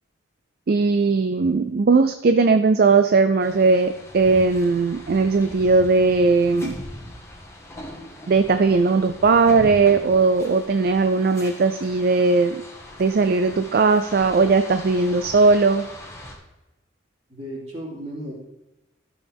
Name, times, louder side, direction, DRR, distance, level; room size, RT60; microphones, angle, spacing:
voice 1, 0.7-6.8 8.3-12.6 13.0-15.9, right 4 dB, 50° right, 9 dB, 0.4 m, -18 dB
sound 1, 3.4-16.3, left 1 dB, 15° left, 1.5 m, -40 dB
voice 2, 17.3-18.3, equal, 35° right, -4 dB, 3.0 m, -34 dB
13.0 x 6.3 x 3.5 m, 0.99 s
head